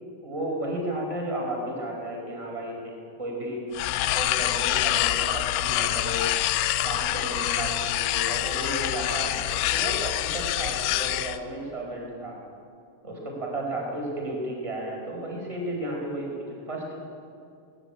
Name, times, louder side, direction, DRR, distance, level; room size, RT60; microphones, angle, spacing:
voice 1, 0.2-2.9 3.2-3.6 4.1-6.3 6.8-12.4 13.0-17.0, right 1 dB, 5° right, -2 dB, 4.7 m, -33 dB
sound 1, 3.7-11.4, left 14 dB, 90° left, 2.3 m, -26 dB
21.5 x 19.0 x 8.8 m, 2.6 s
omnidirectional pair, 5.5 m